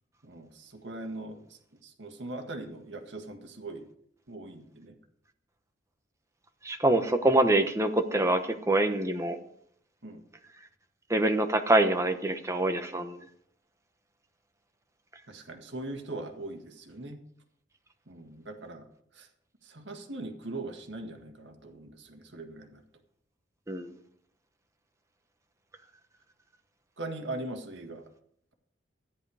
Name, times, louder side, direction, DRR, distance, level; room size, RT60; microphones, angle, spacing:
voice 1, 0.2-3.9 4.3-5.0 10.0-10.2 15.3-17.2 18.1-18.9 19.1-19.3 19.6-22.8 27.0-28.0, right 2 dB, 75° right, 5 dB, 1.8 m, -40 dB
voice 2, 6.6-8.4 8.7-9.4 11.1-13.2 23.7-23.9, right 1 dB, 15° right, 6 dB, 1.1 m, -25 dB
14.0 x 10.0 x 4.9 m, 0.67 s
head